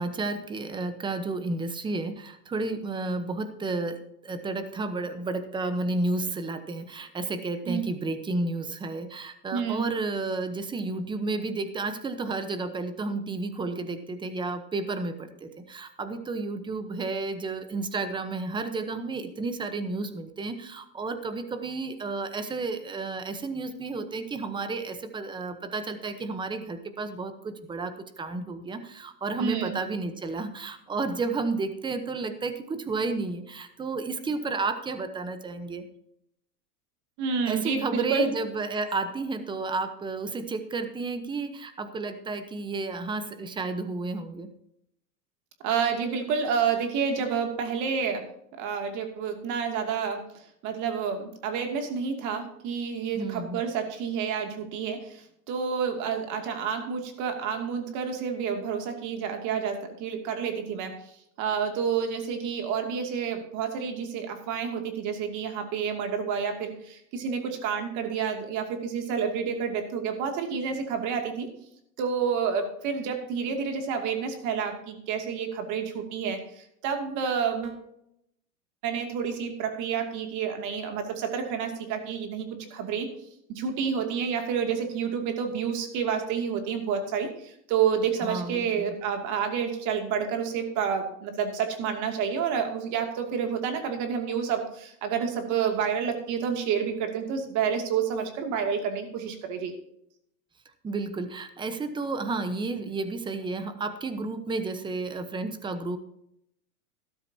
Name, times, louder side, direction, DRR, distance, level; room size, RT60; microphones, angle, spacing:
voice 1, 0.0-35.8 37.5-44.5 53.1-53.6 88.2-88.9 100.8-106.0, right 3 dB, 10° right, 10 dB, 0.9 m, -32 dB
voice 2, 9.5-9.8 29.4-29.7 37.2-38.3 45.6-48.2 48.6-50.2 50.6-55.1 55.5-61.0 61.4-71.5 72.0-76.4 76.8-77.8 78.8-82.4 82.7-83.1 83.5-99.7, right 6 dB, 40° right, 4 dB, 2.6 m, -29 dB
13.5 x 13.0 x 2.8 m, 0.75 s
supercardioid pair, 140°, 45 cm